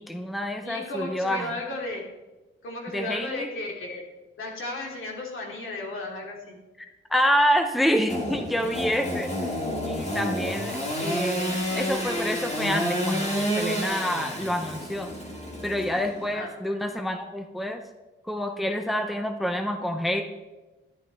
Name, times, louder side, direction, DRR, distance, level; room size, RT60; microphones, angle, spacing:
voice 1, 0.0-1.5 2.9-3.5 6.8-9.5 9.8-15.1 15.6-17.8 18.3-20.2, equal, ahead, 5 dB, 0.6 m, -27 dB
voice 2, 0.6-2.0 2.6-4.0 4.4-6.6 16.3-16.5, left 2 dB, 70° left, -1 dB, 2.7 m, -34 dB
Engine / Sawing, 8.1-16.3, equal, 30° left, 1.7 m, -29 dB
12.0 x 10.5 x 3.4 m, 1.1 s
wide cardioid pair, 160°, 21 cm